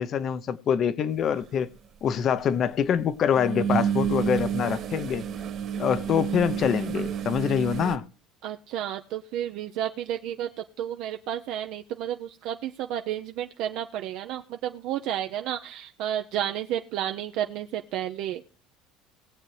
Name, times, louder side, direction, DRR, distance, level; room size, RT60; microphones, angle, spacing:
voice 1, 0.0-1.7 2.0-5.3 5.8-8.1, left 8 dB, 35° left, 0.7 m, -25 dB
sound 1, 1.4-1.5 3.3-8.0, right 8 dB, 40° right, 1.6 m, -29 dB
voice 2, 8.4-10.5 10.8-18.4, right 11 dB, 60° right, 0.6 m, -31 dB
19.5 x 7.4 x 3.3 m
cardioid pair, 150°, 0 cm